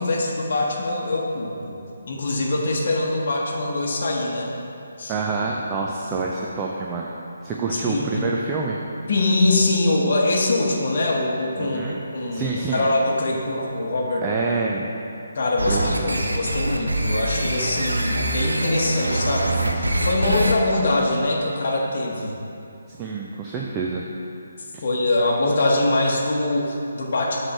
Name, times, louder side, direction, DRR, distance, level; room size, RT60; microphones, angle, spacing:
voice 1, 0.0-1.8 2.1-4.5 5.0-5.1 7.7-8.2 9.1-14.2 15.3-22.4 24.8-27.4, left 2 dB, 50° left, -2 dB, 1.0 m, -23 dB
voice 2, 5.1-7.1 7.4-8.8 11.6-12.0 12.3-12.9 14.2-14.8 15.7-16.1 22.9-24.0 24.7-24.8, right 4 dB, 20° right, -2 dB, 0.4 m, -27 dB
sound 1, 15.6-20.5, right 1 dB, 80° right, 0.7 m, -24 dB
7.4 x 3.3 x 6.0 m, 2.7 s
figure-of-eight pair, 145°, 0 cm